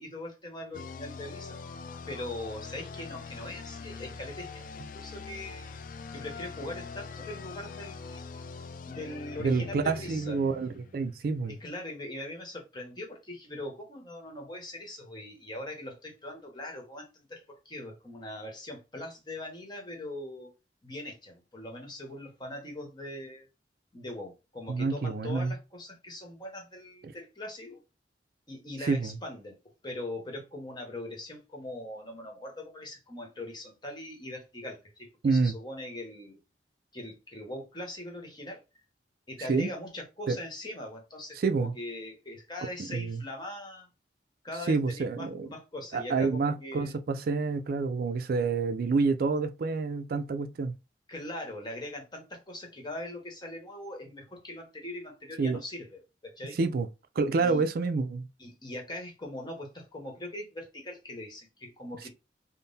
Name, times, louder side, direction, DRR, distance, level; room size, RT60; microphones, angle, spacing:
voice 1, 0.0-1.6 2.1-4.6 4.9-5.8 6.1-8.3 8.8-10.4 11.5-20.5 20.8-23.5 23.9-27.8 28.5-29.6 29.8-36.4 36.9-38.6 39.3-43.9 44.4-47.0 51.1-56.6 57.4-57.6 58.4-62.1, left 1 dB, 25° left, 1.1 m, -41 dB
sound 1, 0.7-11.4, left 5 dB, 50° left, 0.4 m, -43 dB
voice 2, 9.4-11.6 24.7-25.5 28.9-29.2 35.2-35.6 39.5-39.7 40.3-40.4 41.4-41.8 42.9-43.2 44.7-45.5 45.9-50.7 55.4-55.6 56.6-56.9 57.2-58.2, right 4 dB, 55° right, 0.4 m, -28 dB
3.7 x 2.1 x 3.9 m
head